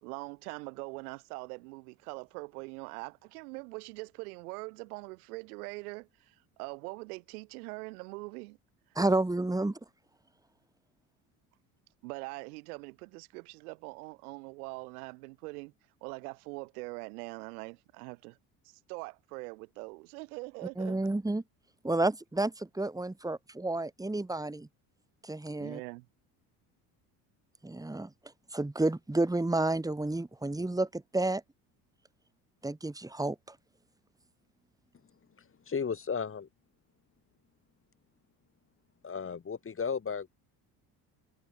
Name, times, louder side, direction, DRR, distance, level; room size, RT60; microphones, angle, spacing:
voice 1, 0.0-8.6 12.0-15.7 16.0-18.4 18.6-21.0 25.6-26.0, right 26 dB, 85° right, 3.7 m, -43 dB
voice 2, 8.9-9.8 20.8-21.4 21.8-24.7 25.2-25.8 27.6-31.4 32.6-33.6, right 2 dB, 10° right, 2.5 m, -31 dB
voice 3, 35.4-36.5 39.0-40.3, left 6 dB, 30° left, 2.5 m, -34 dB
supercardioid pair, 80°, 44 cm